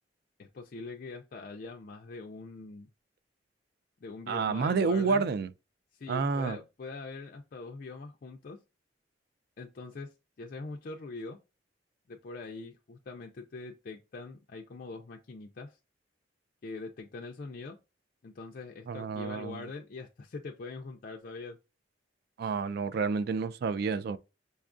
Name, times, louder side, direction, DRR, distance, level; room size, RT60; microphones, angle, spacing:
voice 1, 0.4-2.9 4.0-5.2 6.0-8.6 9.6-11.4 12.1-15.8 16.6-17.8 18.2-21.6, left 3 dB, 50° left, 0.4 m, -43 dB
voice 2, 4.3-5.5 6.1-6.6 18.9-19.6 22.4-24.2, right 5 dB, 60° right, 0.3 m, -29 dB
5.2 x 2.3 x 2.4 m
head